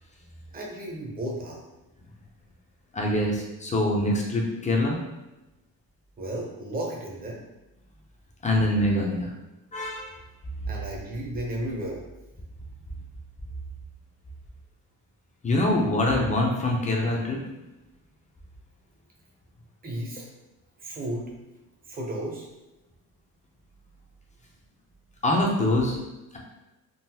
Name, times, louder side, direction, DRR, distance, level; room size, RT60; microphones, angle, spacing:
voice 1, 0.5-1.6 6.2-7.4 10.6-12.0 19.8-20.3 20.8-21.2 21.9-22.5, right 1 dB, 25° right, -1 dB, 0.7 m, -33 dB
voice 2, 2.9-5.0 8.4-9.3 9.7-10.1 15.4-17.4 25.2-26.0, left 1 dB, 20° left, -1 dB, 0.5 m, -24 dB
3.7 x 2.0 x 2.8 m, 1.0 s
cardioid pair, 125°, 35 cm